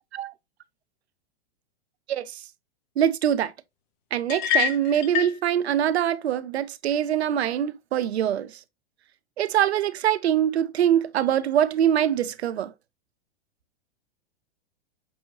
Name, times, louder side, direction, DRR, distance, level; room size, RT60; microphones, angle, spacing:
voice 1, 2.1-2.4 3.0-3.5 4.1-8.5 9.4-12.7, right 10 dB, 90° right, 0.5 m, -23 dB
sound 1, 4.3-5.4, left 9 dB, 45° left, 0.6 m, -25 dB
5.4 x 2.8 x 2.6 m
hypercardioid pair, 115°, 31 cm